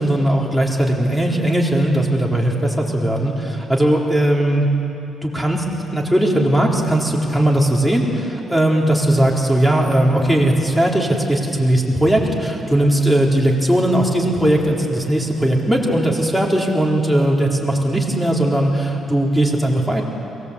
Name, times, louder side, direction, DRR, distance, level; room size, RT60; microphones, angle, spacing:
voice 1, 0.0-4.7 5.2-5.6 5.9-20.0, right 1 dB, ahead, -2 dB, 4.0 m, -18 dB
23.0 x 18.5 x 8.4 m, 2.8 s
cardioid pair, 90°, 0 cm